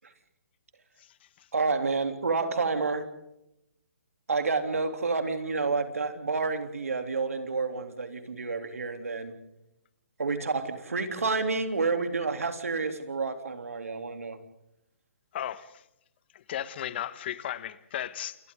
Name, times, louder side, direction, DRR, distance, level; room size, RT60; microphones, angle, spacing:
voice 1, 1.5-3.1 4.3-9.3 10.2-14.4, right 4 dB, 85° right, 3.3 m, -29 dB
voice 2, 15.3-15.8 16.3-18.4, left 11 dB, 45° left, 1.5 m, -35 dB
30.0 x 28.5 x 3.9 m
hypercardioid pair, 140°, 8 cm